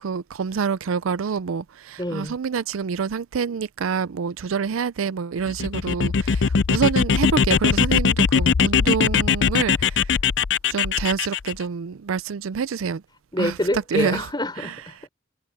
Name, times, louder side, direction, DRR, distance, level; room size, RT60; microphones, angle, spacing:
voice 1, 0.0-10.1 10.7-13.0 13.4-13.6 13.9-14.3, right 6 dB, 80° right, 0.4 m, -27 dB
voice 2, 2.0-2.4 13.3-15.1, left 1 dB, 20° left, 4.8 m, -26 dB
sound 1, 5.5-11.5, left 6 dB, 55° left, 0.5 m, -21 dB
head